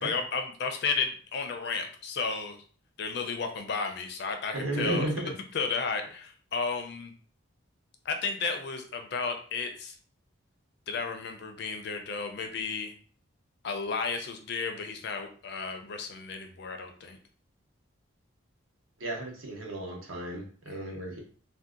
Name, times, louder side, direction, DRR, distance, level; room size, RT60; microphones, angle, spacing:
voice 1, 0.0-2.6 3.0-5.1 5.5-7.1 8.0-10.0 10.9-12.9 13.6-17.2 20.7-20.9, left 4 dB, 50° left, 5 dB, 0.4 m, -33 dB
voice 2, 4.5-5.3 19.0-21.2, right 1 dB, 75° right, 0 dB, 0.8 m, -33 dB
2.7 x 2.1 x 3.6 m, 0.43 s
head